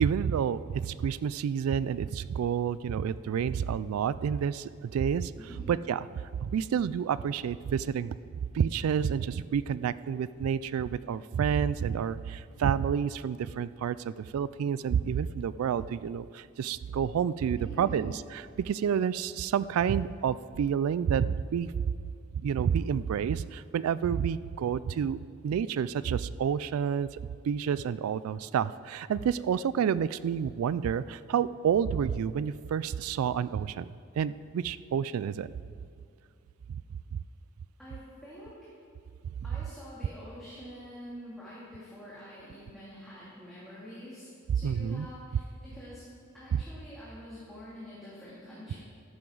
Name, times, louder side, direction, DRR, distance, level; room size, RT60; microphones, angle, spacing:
voice 1, 0.0-5.3 5.7-8.2 8.5-21.9 22.3-25.2 25.4-27.1 27.4-35.5 37.1-37.2 44.6-45.1 46.5-46.6, right 7 dB, 80° right, 17 dB, 0.3 m, -29 dB
voice 2, 5.4-5.7 17.6-18.1 37.8-38.5 39.4-46.1 46.3-48.7, equal, ahead, -11 dB, 2.7 m, -46 dB
14.0 x 11.5 x 3.9 m, 2.4 s
head